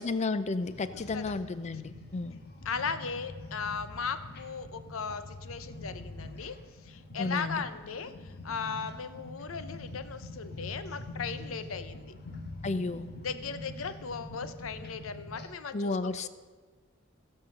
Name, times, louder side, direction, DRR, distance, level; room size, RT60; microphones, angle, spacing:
voice 1, 0.0-2.4 7.2-7.6 12.6-13.1 15.7-16.3, left 3 dB, 35° left, 13 dB, 0.5 m, -32 dB
sound 1, 0.6-15.5, left 2 dB, 55° left, 1.3 m, -45 dB
voice 2, 0.9-1.3 2.6-6.6 6.8-12.1 13.2-15.9, left 5 dB, 80° left, 11 dB, 0.7 m, -37 dB
16.0 x 5.5 x 6.5 m, 1.4 s
head